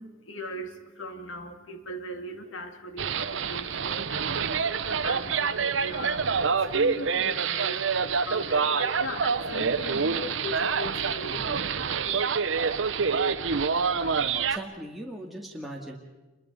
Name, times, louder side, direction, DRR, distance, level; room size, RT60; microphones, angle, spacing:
voice 1, 0.0-14.6, left 1 dB, 85° left, 6 dB, 2.3 m, -40 dB
sound 1, 3.0-14.6, right 5 dB, 75° right, 0.9 m, -27 dB
voice 2, 11.2-11.6 14.4-16.0, right 1 dB, ahead, -2 dB, 2.0 m, -40 dB
27.0 x 23.0 x 5.3 m, 1.1 s
head